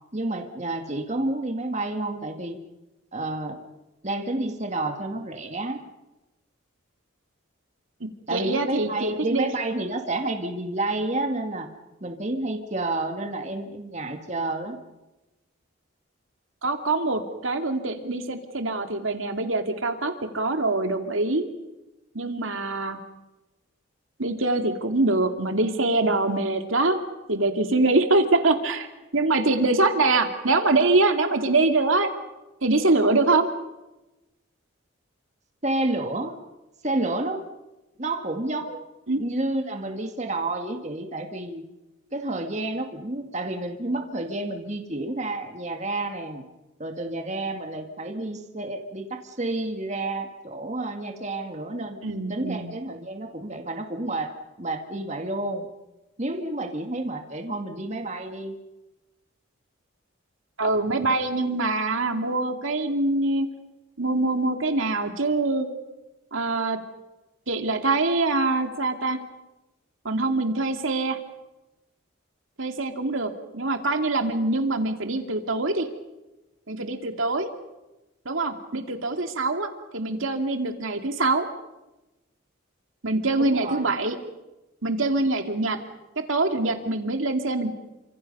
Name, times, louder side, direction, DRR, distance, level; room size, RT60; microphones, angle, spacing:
voice 1, 0.1-2.6 3.1-3.6 4.0-5.8 8.3-11.7 12.0-14.8 35.6-36.4 36.8-37.4 38.0-38.8 39.2-41.7 42.1-46.4 46.8-52.0 52.3-55.7 56.2-58.6 83.4-83.9, right 2 dB, 35° right, 4 dB, 2.1 m, -30 dB
voice 2, 8.0-9.5 16.6-21.4 22.1-23.0 24.2-27.0 27.3-28.9 29.1-32.1 32.6-33.5 39.1-39.2 52.0-52.7 60.6-63.5 64.0-65.7 66.3-66.8 67.5-69.2 70.0-71.2 72.6-75.9 76.7-77.5 78.3-81.5 83.0-84.2 84.8-85.8 86.2-87.7, right 2 dB, 75° right, 5 dB, 2.4 m, -24 dB
29.0 x 26.5 x 5.5 m, 1.0 s
head